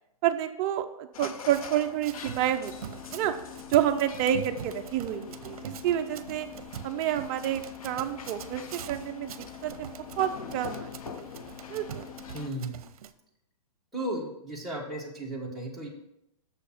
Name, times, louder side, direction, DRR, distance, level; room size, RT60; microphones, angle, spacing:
voice 1, 0.2-3.3 3.7-6.5 6.8-9.3 9.6-9.9 10.2-10.9 11.7-12.1, right 11 dB, 25° right, 7 dB, 0.5 m, -29 dB
sound 1, 1.1-12.5, left 8 dB, 65° left, 0.8 m, -43 dB
Run, 1.5-13.1, right 9 dB, 70° right, 0.7 m, -44 dB
voice 2, 12.3-12.8 13.9-15.9, right 1 dB, ahead, -6 dB, 1.5 m, -35 dB
6.9 x 5.7 x 5.8 m, 0.83 s
hypercardioid pair, 155°, 19 cm